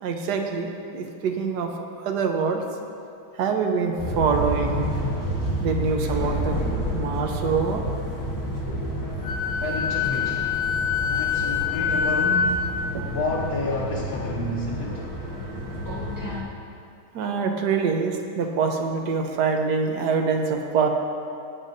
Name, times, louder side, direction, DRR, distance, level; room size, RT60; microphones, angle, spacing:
voice 1, 0.0-1.7 2.0-2.6 3.4-4.9 5.6-6.6 6.9-7.8 12.9-13.0 17.1-20.9, right 5 dB, 65° right, 4 dB, 1.2 m, -25 dB
sound 1, 4.0-16.4, equal, 20° left, 0.4 m, -30 dB
Wind instrument woodwind instrument, 9.2-12.8, left 7 dB, 90° left, 2.0 m, -25 dB
voice 2, 9.6-15.1, left 2 dB, 65° left, -4 dB, 1.5 m, -31 dB
15.0 x 9.5 x 2.6 m, 2.5 s
omnidirectional pair, 2.4 m